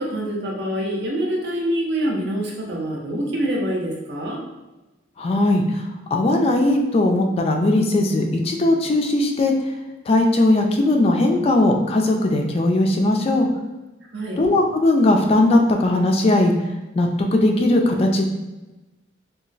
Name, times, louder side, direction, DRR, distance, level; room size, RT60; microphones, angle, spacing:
voice 1, 0.0-4.4 14.1-14.4, right 1 dB, 65° right, -2 dB, 0.6 m, -25 dB
voice 2, 5.2-5.8 6.1-9.5 10.1-13.5 14.4-16.5 17.0-18.2, left 2 dB, 35° left, 3 dB, 0.3 m, -18 dB
2.2 x 2.0 x 3.8 m, 1.1 s
head